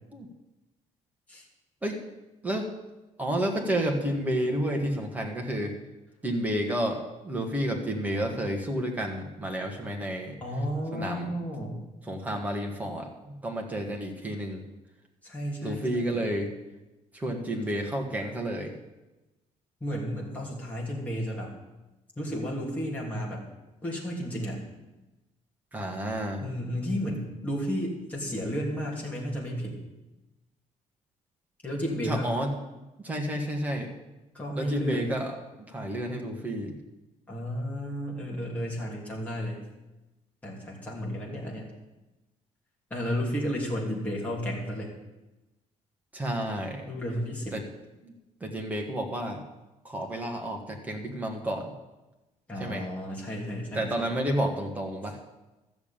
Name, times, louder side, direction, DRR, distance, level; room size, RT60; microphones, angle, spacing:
voice 1, 3.2-5.7 6.2-10.3 10.9-11.3 12.1-14.6 15.6-16.5 17.1-18.7 25.7-26.4 32.0-32.5 33.0-33.9 34.5-35.3 35.7-36.8 46.1-46.8 47.5-47.6 48.0-48.1 48.4-49.4 49.8-51.7 52.6-52.8 53.7-55.2, right 1 dB, 10° right, 1 dB, 1.6 m, -30 dB
voice 2, 10.4-11.8 15.2-16.3 19.8-21.5 22.2-23.4 23.8-24.6 26.4-29.8 31.6-32.3 34.3-35.0 37.3-39.6 40.4-41.7 42.9-44.9 46.9-47.6 52.5-54.1, equal, 10° left, -3 dB, 2.9 m, -33 dB
13.0 x 7.1 x 8.9 m, 1.0 s
cardioid pair, 175°, 13 cm